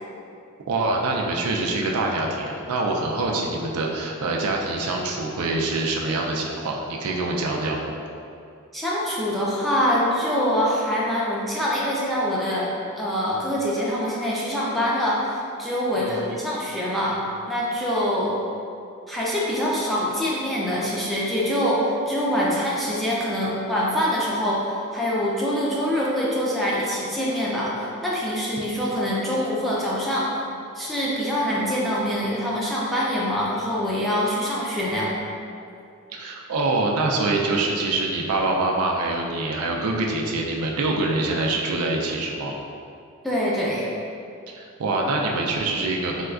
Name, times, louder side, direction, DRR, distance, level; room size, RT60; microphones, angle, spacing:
voice 1, 0.7-7.9 16.0-16.3 36.1-42.6 44.5-46.3, right 2 dB, 80° right, 0 dB, 0.4 m, -25 dB
voice 2, 8.7-17.2 17.5-18.3 19.1-30.3 30.8-35.1 43.2-43.9, equal, ahead, -7 dB, 0.4 m, -24 dB
4.2 x 2.3 x 2.4 m, 2.5 s
head